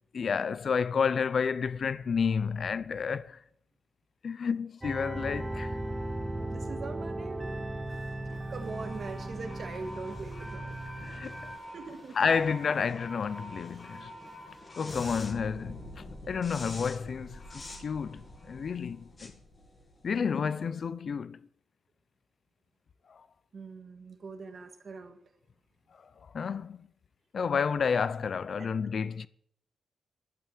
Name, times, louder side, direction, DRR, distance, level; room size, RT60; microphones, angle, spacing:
voice 1, 0.1-3.4 4.2-5.8 11.0-11.5 12.2-14.1 14.8-19.3 20.0-21.5 23.1-23.2 26.3-26.9 27.3-29.3, left 6 dB, 45° left, 0.6 m, -30 dB
sound 1, 4.8-11.6, right 1 dB, 10° right, 0.9 m, -37 dB
voice 2, 6.5-7.5 8.5-10.8 11.7-12.3 23.5-25.2 28.6-28.7, right 4 dB, 40° right, 1.6 m, -42 dB
sound 2, 7.9-20.3, left 1 dB, 25° left, 2.3 m, -46 dB
12.0 x 8.8 x 9.1 m
wide cardioid pair, 180°, 0 cm